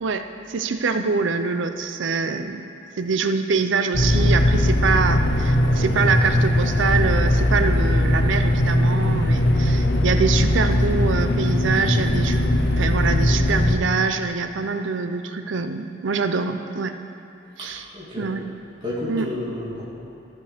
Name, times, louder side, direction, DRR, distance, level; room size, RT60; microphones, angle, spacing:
voice 1, 0.0-2.6 3.0-12.4 12.8-17.0 17.6-17.8 18.2-18.4 19.1-19.3, right 4 dB, 80° right, 8 dB, 0.5 m, -24 dB
sound 1, 3.9-13.8, left 1 dB, 55° left, 0.7 m, -20 dB
voice 2, 17.6-18.3 18.8-19.8, left 2 dB, 25° right, -9 dB, 2.5 m, -31 dB
14.5 x 5.3 x 5.0 m, 2.7 s
head